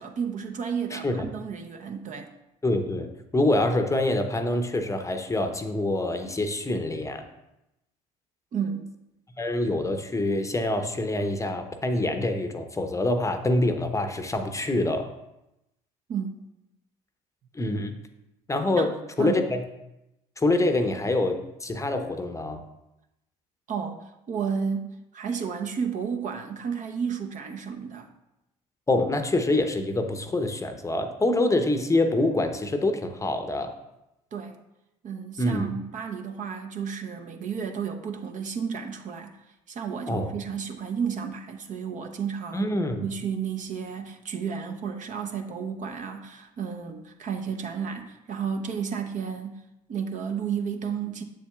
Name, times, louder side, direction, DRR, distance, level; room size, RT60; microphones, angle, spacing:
voice 1, 0.0-2.3 8.5-8.9 16.1-16.4 18.8-18.9 19.2-19.4 23.7-28.1 34.3-34.6 35.0-39.3 39.7-42.7 43.0-49.6 49.9-51.2, right 6 dB, 45° right, 5 dB, 0.8 m, -32 dB
voice 2, 0.9-1.3 2.6-7.3 9.4-15.1 17.5-17.9 18.5-19.6 20.4-22.6 28.9-33.7 35.4-35.7 40.1-40.3 42.5-43.0, left 2 dB, 15° left, 6 dB, 0.8 m, -26 dB
7.2 x 7.0 x 2.4 m, 0.90 s
hypercardioid pair, 60°, 18 cm